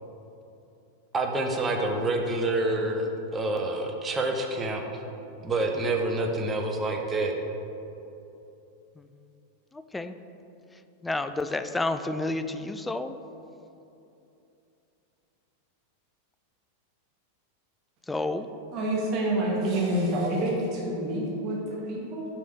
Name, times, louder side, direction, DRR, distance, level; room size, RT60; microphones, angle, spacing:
voice 1, 1.1-4.8 5.4-7.3, right 2 dB, 20° right, 2 dB, 0.8 m, -27 dB
voice 2, 9.7-10.2 10.7-13.2 18.1-18.5, left 2 dB, 10° left, 9 dB, 0.3 m, -30 dB
voice 3, 18.7-22.3, right 1 dB, 40° right, -3 dB, 1.4 m, -28 dB
5.3 x 4.8 x 6.4 m, 2.8 s
figure-of-eight pair, 90°, 0 cm